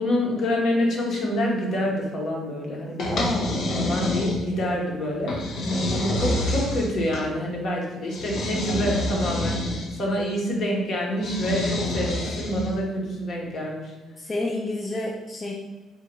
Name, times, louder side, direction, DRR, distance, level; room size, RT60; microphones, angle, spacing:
voice 1, 0.0-5.7 6.0-13.9, equal, 55° left, -1 dB, 1.1 m, -27 dB
sound 1, 3.0-4.7 5.3-7.3 8.1-10.0 11.2-12.8, left 1 dB, 70° left, 0.8 m, -27 dB
voice 2, 3.1-3.5 5.6-6.3 14.2-15.5, left 1 dB, 25° left, -2 dB, 0.5 m, -29 dB
3.8 x 2.5 x 4.4 m, 1.2 s
cardioid pair, 105°, 0 cm